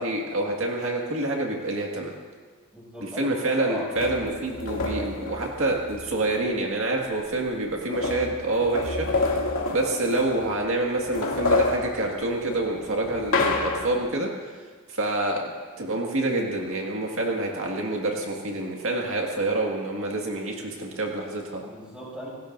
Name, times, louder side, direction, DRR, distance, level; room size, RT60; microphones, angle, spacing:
voice 1, 0.0-2.1 3.0-9.4 9.7-14.3 14.9-21.6, right 2 dB, 65° right, -1 dB, 2.0 m, -27 dB
voice 2, 2.7-4.3 4.8-5.1 21.6-22.3, right 1 dB, 5° right, -6 dB, 6.5 m, -38 dB
sound 1, 4.0-6.1 7.1-7.2 7.5-10.6 11.0-14.1, left 3 dB, 70° left, 2.5 m, -28 dB
28.0 x 19.0 x 2.7 m, 1.5 s
head